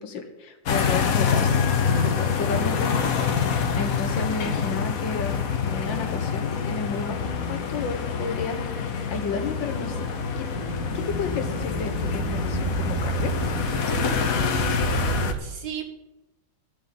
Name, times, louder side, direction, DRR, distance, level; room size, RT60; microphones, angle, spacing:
voice 1, 0.0-1.5 2.0-8.7 9.1-10.1 10.4-10.5 10.9-13.4, left 4 dB, 85° left, 5 dB, 2.0 m, -32 dB
sound 1, 0.7-15.3, left 6 dB, 55° left, 1.2 m, -26 dB
sound 2, 9.8-15.3, right 6 dB, 30° right, 0.8 m, -31 dB
voice 2, 14.5-15.9, right 8 dB, 60° right, 4 dB, 2.0 m, -38 dB
12.5 x 5.4 x 9.1 m, 1.0 s
omnidirectional pair, 2.0 m